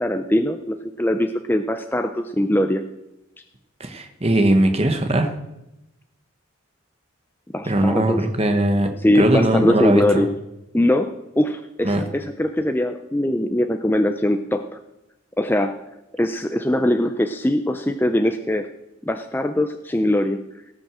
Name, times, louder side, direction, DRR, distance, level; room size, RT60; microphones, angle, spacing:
voice 1, 0.0-2.8 7.5-8.2 9.0-10.3 10.7-14.6 15.4-15.7 16.2-18.7 19.0-20.4, left 1 dB, 10° left, 7 dB, 0.5 m, -21 dB
voice 2, 3.8-5.3 7.7-8.9 9.1-10.2 11.8-12.0, right 1 dB, 30° right, 6 dB, 1.3 m, -19 dB
17.5 x 6.3 x 7.4 m, 0.92 s
head